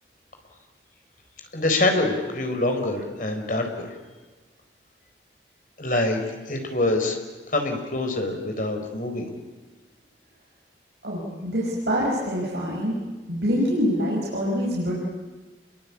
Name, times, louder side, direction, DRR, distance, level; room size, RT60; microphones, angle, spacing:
voice 1, 1.5-3.9 5.8-6.2 6.5-7.2 7.5-9.3, left 2 dB, 45° left, 5 dB, 4.3 m, -25 dB
voice 2, 11.0-13.0 13.3-14.9, equal, 65° right, -4 dB, 5.5 m, -25 dB
29.0 x 22.5 x 8.5 m, 1.3 s
head